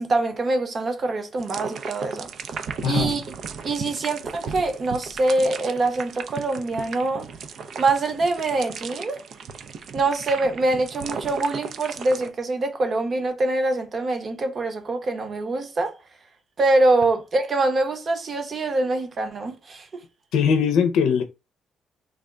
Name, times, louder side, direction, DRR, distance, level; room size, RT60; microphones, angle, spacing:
voice 1, 0.0-2.3 2.8-3.2 3.6-7.3 7.8-9.2 9.9-15.9 16.6-20.0, right 2 dB, 45° right, 0.9 m, -24 dB
sound 1, 1.4-12.3, right 5 dB, 65° right, 0.4 m, -35 dB
voice 2, 2.8-3.1 20.3-21.2, left 7 dB, 90° left, 0.5 m, -20 dB
3.4 x 2.1 x 3.6 m
cardioid pair, 90°, 0 cm